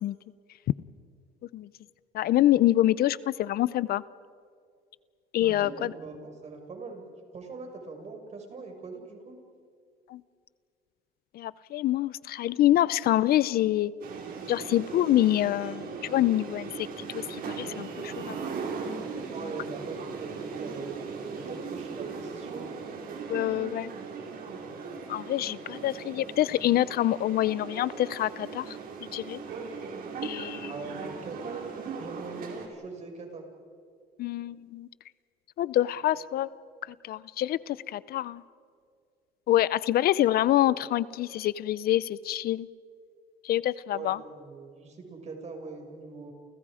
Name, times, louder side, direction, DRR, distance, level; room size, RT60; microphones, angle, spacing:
voice 1, 2.1-4.0 5.3-5.7 10.1-10.2 11.3-13.9 14.5-18.5 23.3-23.9 25.1-29.4 30.2-30.7 34.2-34.9 35.6-36.5 37.0-38.4 39.5-42.7 43.4-44.2, left 13 dB, 65° left, 18 dB, 0.6 m, -26 dB
voice 2, 5.4-7.0 7.3-9.4 19.3-22.6 30.7-31.6 31.8-33.4 43.9-46.3, right 4 dB, 40° right, 3 dB, 5.9 m, -41 dB
sound 1, 14.0-32.7, right 5 dB, 60° right, 5.0 m, -38 dB
29.5 x 29.5 x 5.0 m, 2.2 s
cardioid pair, 110°, 17 cm